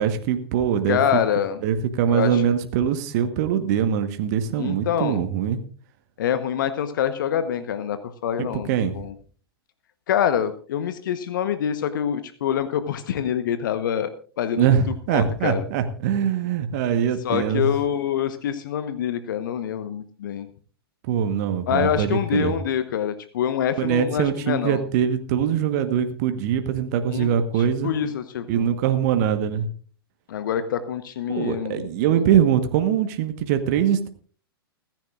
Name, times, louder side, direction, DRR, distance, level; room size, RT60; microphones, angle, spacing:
voice 1, 0.0-1.0 1.6-5.6 8.4-9.1 14.6-17.7 21.1-22.5 23.8-27.9 28.5-29.7 31.3-34.1, right 8 dB, 45° right, 8 dB, 1.2 m, -23 dB
voice 2, 0.9-1.6 2.1-2.4 4.6-5.2 6.2-9.1 10.1-14.1 14.4-14.8 15.1-15.6 17.2-20.5 21.7-24.8 27.1-27.3 27.6-28.7 30.3-31.9, left 9 dB, 55° left, 11 dB, 1.0 m, -25 dB
29.5 x 10.5 x 2.4 m, 0.41 s
figure-of-eight pair, 105°, 13 cm